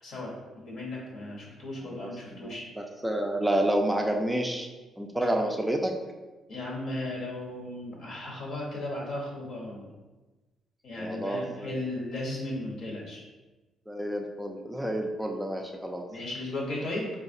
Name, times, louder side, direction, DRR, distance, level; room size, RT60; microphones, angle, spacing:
voice 1, 0.0-2.6 5.2-5.3 6.5-9.9 10.8-13.2 16.1-17.1, left 1 dB, 65° left, -3 dB, 1.0 m, -36 dB
voice 2, 1.8-4.7 5.0-5.9 11.0-11.9 13.9-16.0, right 1 dB, 5° right, 2 dB, 0.3 m, -29 dB
3.8 x 2.4 x 2.6 m, 1.2 s
cardioid pair, 90°, 0 cm